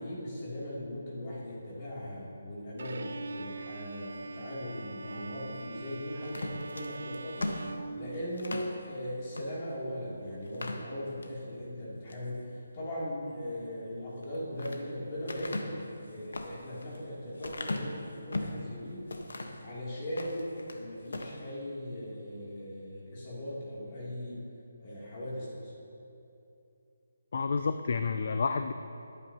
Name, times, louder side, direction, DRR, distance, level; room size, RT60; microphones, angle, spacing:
voice 1, 0.0-12.4 12.7-19.0 19.6-24.4 24.8-25.7, left 1 dB, 25° left, -8 dB, 3.0 m, -39 dB
Bowed string instrument, 2.8-8.7, right 3 dB, 55° right, 0.5 m, -43 dB
sound 1, 6.2-8.7 9.3-9.5 9.9-10.0 10.4-11.4 11.8-12.3 14.1-14.8 15.3-18.6 19.1-19.6 20.0-20.8 21.1-21.4, left 2 dB, 85° left, 1.3 m, -38 dB
voice 2, 27.3-28.7, left 5 dB, 45° left, 8 dB, 0.4 m, -29 dB
21.5 x 8.9 x 3.0 m, 2.7 s
hypercardioid pair, 175°, 0 cm